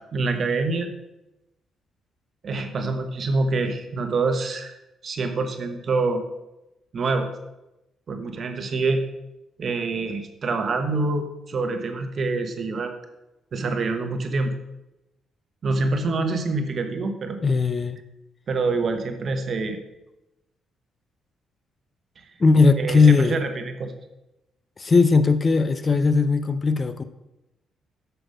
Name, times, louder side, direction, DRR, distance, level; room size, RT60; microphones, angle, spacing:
voice 1, 0.1-0.9 2.4-4.7 5.0-6.2 6.9-7.3 8.1-9.0 9.6-12.9 13.5-14.5 15.6-17.4 18.5-19.8 22.8-23.9, right 3 dB, 50° right, 7 dB, 1.1 m, -26 dB
voice 2, 17.4-18.0 22.4-23.4 24.8-27.0, left 4 dB, 30° left, 12 dB, 0.5 m, -18 dB
6.8 x 6.0 x 5.0 m, 0.94 s
cardioid pair, 90°, 0 cm